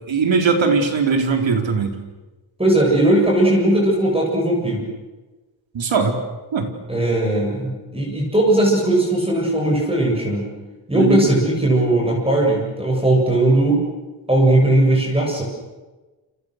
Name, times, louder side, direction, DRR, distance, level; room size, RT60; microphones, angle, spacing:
voice 1, 0.1-2.0 5.7-6.2 6.5-6.7 11.0-11.3, right 5 dB, 85° right, 4 dB, 4.4 m, -19 dB
voice 2, 2.6-4.8 6.9-10.5 10.9-13.8 14.3-15.4, right 1 dB, 10° right, -1 dB, 7.5 m, -18 dB
29.5 x 28.0 x 6.7 m, 1.2 s
wide cardioid pair, 140°, 44 cm